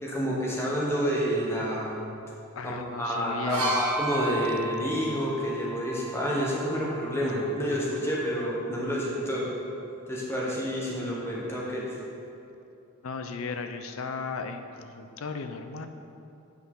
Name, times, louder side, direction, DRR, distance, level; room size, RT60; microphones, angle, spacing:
voice 1, 0.0-2.0 2.6-9.5 10.1-11.9, equal, 10° left, -4 dB, 1.2 m, -29 dB
voice 2, 2.6-3.8 13.0-15.9, left 4 dB, 70° left, 7 dB, 0.5 m, -35 dB
sound 1, 3.5-7.3 8.3-8.5, right 2 dB, 80° right, 1.4 m, -35 dB
8.7 x 5.8 x 5.5 m, 2.7 s
head